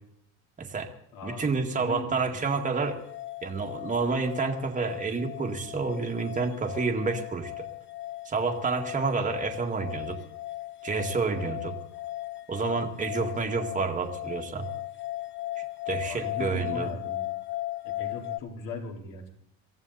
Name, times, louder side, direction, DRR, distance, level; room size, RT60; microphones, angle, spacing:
voice 1, 0.6-0.9 1.2-3.0 3.4-7.7 8.3-10.2 10.8-11.8 12.5-14.7 15.9-16.9, right 4 dB, 20° right, 2 dB, 2.1 m, -29 dB
voice 2, 1.1-2.4 16.0-17.4 18.0-19.3, left 3 dB, 50° left, 2 dB, 4.5 m, -39 dB
sound 1, 2.8-18.4, left 15 dB, 30° left, 0.8 m, -37 dB
23.5 x 14.5 x 4.2 m, 0.70 s
cardioid pair, 130°, 39 cm